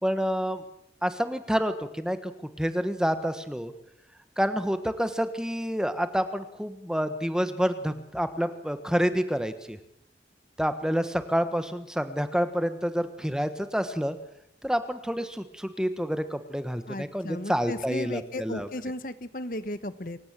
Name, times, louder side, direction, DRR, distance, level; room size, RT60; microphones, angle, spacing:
voice 1, 0.0-0.6 1.0-2.3 2.6-3.7 4.4-9.8 10.6-14.2 14.6-18.7, equal, 5° right, 10 dB, 1.3 m, -28 dB
voice 2, 16.8-20.2, left 1 dB, 50° left, 13 dB, 1.2 m, -35 dB
27.5 x 16.0 x 7.6 m, 0.74 s
head